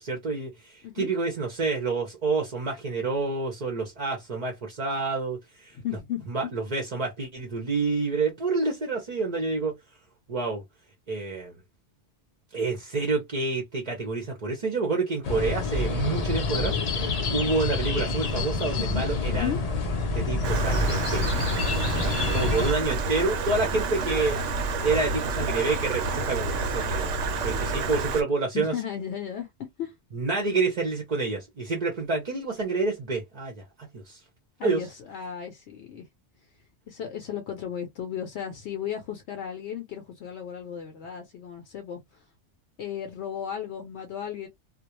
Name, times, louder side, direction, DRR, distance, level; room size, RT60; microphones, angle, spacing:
voice 1, 0.0-5.8 6.3-9.7 10.3-10.6 11.1-11.6 12.5-19.5 20.1-21.3 21.9-24.4 24.8-27.1 27.4-28.7 30.1-34.2 34.6-34.8, right 3 dB, 45° right, 0.6 m, -28 dB
voice 2, 5.7-6.5 19.3-19.6 28.5-29.5 29.8-30.0 34.6-36.1 36.9-42.3 42.8-44.5, left 9 dB, 70° left, 0.8 m, -35 dB
sound 1, 15.2-22.7, left 3 dB, 50° left, 0.5 m, -27 dB
Stream, 20.4-28.2, right 3 dB, 85° right, 1.0 m, -29 dB
2.3 x 2.1 x 2.9 m
omnidirectional pair, 1.2 m